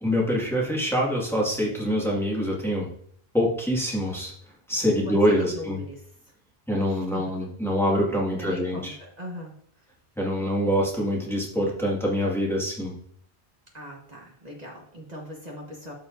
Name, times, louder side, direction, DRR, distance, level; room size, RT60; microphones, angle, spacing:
voice 1, 0.0-2.9 3.3-4.3 4.7-5.8 6.7-9.0 10.2-12.9, equal, ahead, -4 dB, 1.9 m, -25 dB
voice 2, 5.1-6.0 6.9-7.5 8.4-9.5 13.7-15.9, left 1 dB, 40° right, -2 dB, 1.5 m, -39 dB
13.0 x 4.9 x 2.6 m, 0.64 s
omnidirectional pair, 1.1 m